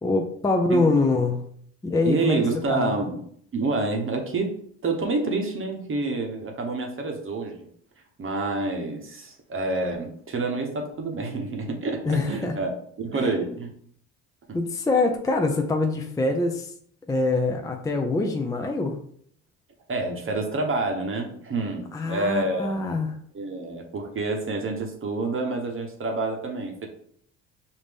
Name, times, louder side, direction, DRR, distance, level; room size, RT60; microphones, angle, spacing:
voice 1, 0.0-1.4 1.8-2.4 2.7-2.9 12.1-12.6 13.1-13.5 14.5-16.7 17.1-19.0 21.9-23.2, left 3 dB, 10° left, 4 dB, 0.4 m, -24 dB
voice 2, 2.0-3.2 3.5-4.6 4.8-7.7 8.2-13.7 14.5-14.6 19.9-22.9 23.3-26.9, right 3 dB, 35° right, 3 dB, 0.9 m, -28 dB
5.0 x 2.6 x 3.5 m, 0.64 s
supercardioid pair, 85°, 36 cm